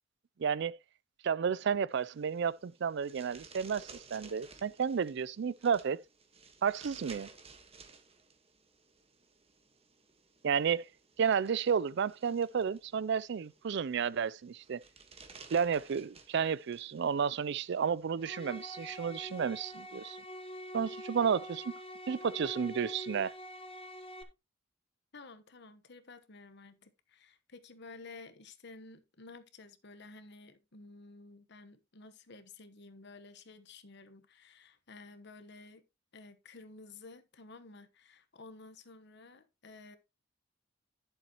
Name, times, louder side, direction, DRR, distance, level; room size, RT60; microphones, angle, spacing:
voice 1, 0.4-0.8 1.2-6.0 6.6-7.3 10.4-10.9 11.2-14.8 15.5-20.2 20.7-21.7 22.1-23.3, right 6 dB, 60° right, 0.4 m, -32 dB
sound 1, 1.9-20.1, right 4 dB, 30° right, 1.4 m, -57 dB
sound 2, 18.2-24.2, equal, 30° left, 1.3 m, -45 dB
voice 2, 25.1-35.8 36.1-40.0, left 3 dB, 60° left, 1.1 m, -53 dB
11.0 x 7.0 x 3.0 m
head